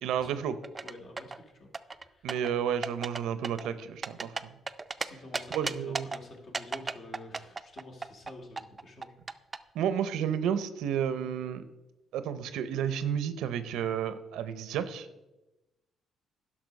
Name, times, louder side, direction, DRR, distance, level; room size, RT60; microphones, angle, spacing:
voice 1, 0.0-0.6 2.2-4.3 5.5-6.1 9.7-11.6 12.1-15.1, right 8 dB, 90° right, 13 dB, 0.6 m, -31 dB
sound 1, 0.6-1.4 1.7-2.5 2.8-3.2 3.4-5.0 5.3-6.2 6.5-9.6, right 4 dB, 30° right, 0.4 m, -34 dB
voice 2, 0.8-2.3 5.0-9.1 9.6-9.7, left 1 dB, 55° left, 2 dB, 2.3 m, -49 dB
11.0 x 5.8 x 5.2 m, 1.0 s
cardioid pair, 90°, 0 cm